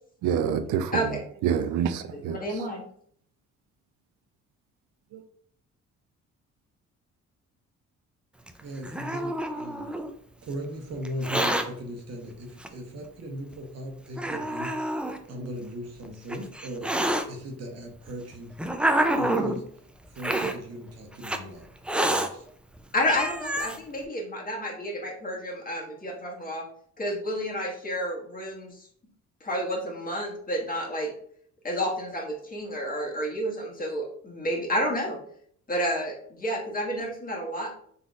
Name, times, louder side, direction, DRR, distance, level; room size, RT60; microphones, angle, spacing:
voice 1, 0.2-2.6 5.1-5.2, right 8 dB, 85° right, 0.5 m, -28 dB
voice 2, 2.3-2.8 22.9-26.6 27.0-28.8 29.4-31.1 31.6-35.2 35.7-37.7, equal, 30° left, 1.6 m, -30 dB
Hiss, 8.5-10.1 11.1-11.7 12.6-12.7 13.5-13.6 14.2-15.2 16.0-17.2 18.1-19.6 20.2-20.6 21.2-21.4 21.9-22.3 22.8-22.9 23.0-23.8, right 1 dB, 5° right, 0.3 m, -27 dB
voice 3, 8.6-10.1 10.4-14.9 15.3-17.0 17.3-18.6 19.2-19.6 20.1-21.7 22.0-22.4, equal, 55° right, 1.1 m, -38 dB
4.1 x 3.9 x 2.4 m
cardioid pair, 90°, 30 cm